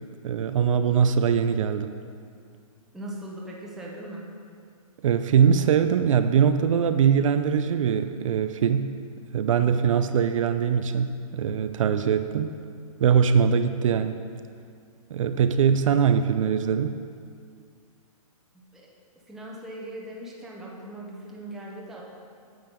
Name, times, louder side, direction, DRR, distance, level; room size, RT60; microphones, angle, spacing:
voice 1, 0.2-1.9 5.0-8.9 9.3-12.5 13.0-14.2 15.1-17.0, right 7 dB, 60° right, 9 dB, 0.5 m, -22 dB
voice 2, 2.9-4.3 18.5-18.9 19.3-22.0, right 1 dB, ahead, -5 dB, 0.9 m, -39 dB
9.6 x 6.7 x 5.2 m, 2.2 s
hypercardioid pair, 155°, 19 cm